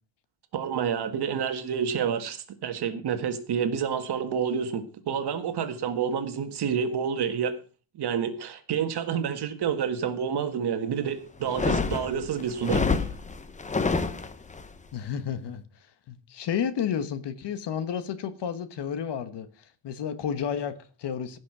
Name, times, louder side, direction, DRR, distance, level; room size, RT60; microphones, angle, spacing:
voice 1, 0.5-7.5 7.9-12.8, right 7 dB, 55° right, 1.7 m, -29 dB
sound 1, 11.4-14.7, left 4 dB, 15° left, 0.7 m, -27 dB
voice 2, 14.9-15.6 16.1-21.4, left 8 dB, 60° left, 1.4 m, -31 dB
15.5 x 6.4 x 6.1 m
cardioid pair, 165°, 48 cm